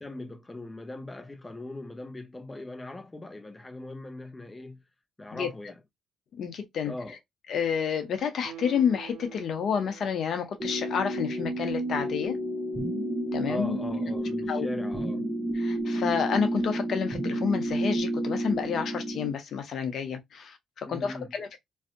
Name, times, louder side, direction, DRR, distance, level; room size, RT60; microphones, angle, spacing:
voice 1, 0.0-4.8 5.2-5.8 6.8-7.2 13.4-15.3 20.8-21.3, left 2 dB, 20° left, 0.3 m, -40 dB
voice 2, 6.4-6.9 7.5-12.4 13.3-13.8 14.5-14.7 15.5-21.6, left 7 dB, 65° left, 0.6 m, -29 dB
Guitar, 8.4-11.7 12.1-12.2, right 11 dB, 90° right, 0.6 m, -47 dB
sound 1, 10.6-19.3, right 1 dB, 30° right, 0.7 m, -30 dB
2.6 x 2.0 x 2.4 m
supercardioid pair, 70°, 0 cm